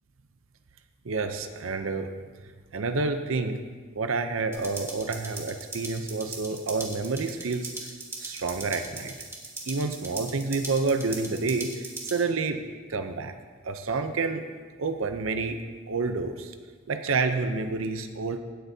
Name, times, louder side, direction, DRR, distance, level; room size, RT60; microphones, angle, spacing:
voice 1, 1.0-2.1 2.7-3.6 4.0-7.9 8.2-9.1 9.7-12.6 12.9-13.3 13.6-14.4 14.8-15.6 15.9-16.5 16.9-18.4, right 4 dB, 75° right, 8 dB, 0.6 m, -29 dB
sound 1, 4.5-12.2, right 2 dB, 10° right, 1.4 m, -40 dB
16.0 x 7.8 x 2.8 m, 1.5 s
head